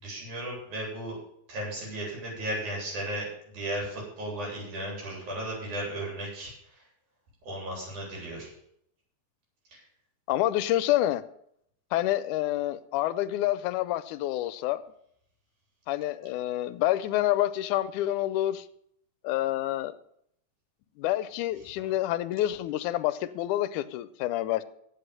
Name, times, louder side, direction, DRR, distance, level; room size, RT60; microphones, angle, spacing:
voice 1, 0.0-1.2 1.5-6.5 7.4-8.5 9.7-9.8 21.8-21.9, right 1 dB, 75° right, -3 dB, 5.3 m, -35 dB
voice 2, 10.3-11.2 11.9-14.8 15.9-18.7 19.2-19.9 21.0-24.6, left 14 dB, 85° left, 15 dB, 2.1 m, -28 dB
8.8 x 7.8 x 7.7 m, 0.72 s
omnidirectional pair, 3.5 m